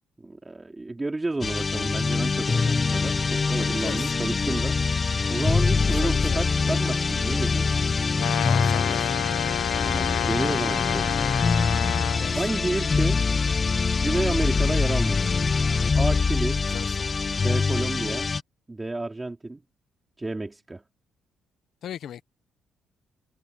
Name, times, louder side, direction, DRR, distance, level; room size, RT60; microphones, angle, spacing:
voice 1, 0.2-5.0 5.3-7.6 9.8-11.1 12.3-13.2 14.0-15.4 15.9-16.6 17.4-18.3 18.7-19.6 20.2-20.8, right 2 dB, 20° right, 2.8 m, -31 dB
sound 1, 1.4-18.4, left 4 dB, 35° left, 0.4 m, -24 dB
voice 2, 3.6-4.1 5.9-6.4 8.4-9.1 12.2-12.5 16.7-17.2 21.8-22.2, left 10 dB, 70° left, 1.0 m, -38 dB
Brass instrument, 8.2-12.3, left 14 dB, 90° left, 0.6 m, -29 dB
cardioid pair, 90°, 0 cm